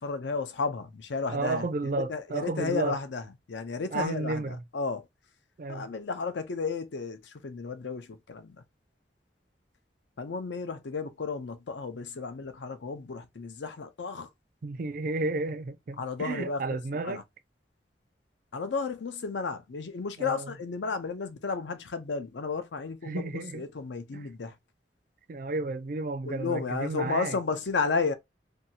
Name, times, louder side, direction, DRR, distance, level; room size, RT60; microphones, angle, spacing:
voice 1, 0.0-3.2 3.5-5.1 5.7-8.6 10.2-14.3 16.0-16.6 17.0-17.2 18.5-23.2 23.5-24.5 26.3-28.1, left 4 dB, 80° left, 0.5 m, -33 dB
voice 2, 1.3-3.0 3.9-4.6 5.6-5.9 14.6-17.2 20.2-20.5 23.1-23.6 24.1-24.3 25.3-27.4, right 3 dB, 50° right, 0.3 m, -32 dB
2.7 x 2.3 x 2.7 m
head